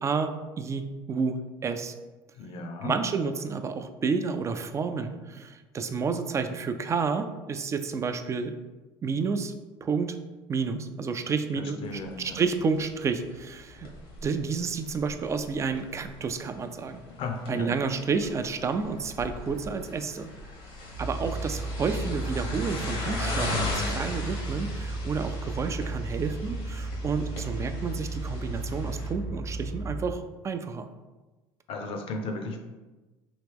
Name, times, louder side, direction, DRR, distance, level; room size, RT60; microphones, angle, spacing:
voice 1, 0.0-1.9 2.8-8.5 9.0-9.5 9.8-10.2 10.5-13.9 14.2-17.0 17.5-20.3 21.0-30.9, right 5 dB, 25° right, 8 dB, 0.3 m, -30 dB
voice 2, 2.4-2.9 11.5-12.4 17.2-17.7 31.7-32.6, left 3 dB, 55° left, 5 dB, 0.6 m, -35 dB
sound 1, 11.9-29.1, left 2 dB, 80° left, 1.1 m, -38 dB
sound 2, 20.9-30.1, right 2 dB, 85° right, 0.7 m, -34 dB
3.0 x 2.9 x 3.5 m, 1.2 s
supercardioid pair, 90°, 11 cm